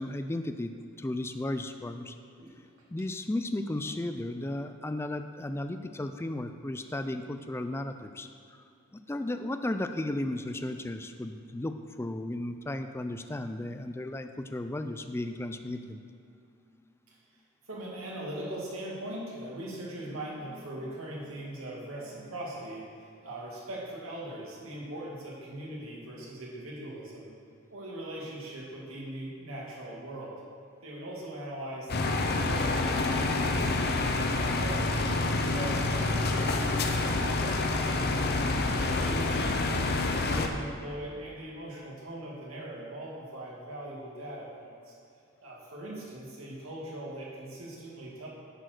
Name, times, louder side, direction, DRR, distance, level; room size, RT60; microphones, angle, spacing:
voice 1, 0.0-2.2 2.9-8.3 8.9-16.0, left 1 dB, 10° left, 8 dB, 0.4 m, -34 dB
voice 2, 16.6-17.2 17.7-27.3 27.7-30.4 30.8-34.1 34.5-38.2 38.8-44.9 45.4-48.3, right 1 dB, 85° right, -4 dB, 2.2 m, -41 dB
sound 1, 31.9-40.5, left 2 dB, 50° left, 0.7 m, -27 dB
10.0 x 4.7 x 6.1 m, 2.5 s
head